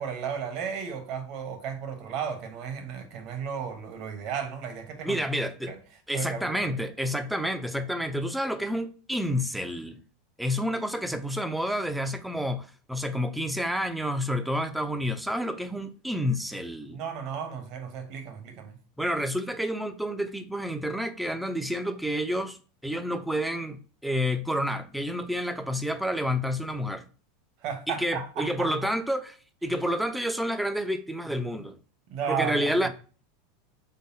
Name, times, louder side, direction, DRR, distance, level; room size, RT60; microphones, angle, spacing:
voice 1, 0.0-5.8 6.1-6.8 16.9-18.8 27.6-28.7 32.1-32.9, right 7 dB, 55° right, 1.0 m, -34 dB
voice 2, 5.0-5.7 6.1-10.0 10.4-17.0 19.0-22.6 22.8-27.0 27.9-29.3 29.6-31.8 32.3-32.9, equal, ahead, 0.5 m, -29 dB
3.9 x 3.4 x 2.7 m
hypercardioid pair, 105°, 0 cm